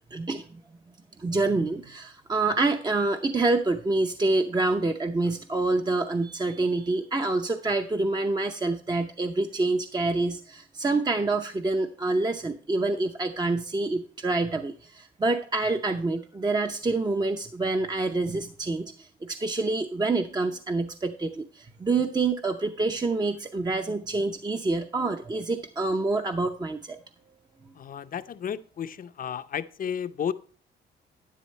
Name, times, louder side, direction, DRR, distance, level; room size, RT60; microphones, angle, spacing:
voice 1, 0.1-0.4 1.2-27.0, right 3 dB, 20° right, 0.7 m, -27 dB
voice 2, 27.8-30.3, left 8 dB, 45° left, 0.6 m, -33 dB
11.0 x 9.5 x 3.2 m
cardioid pair, 90°, 20 cm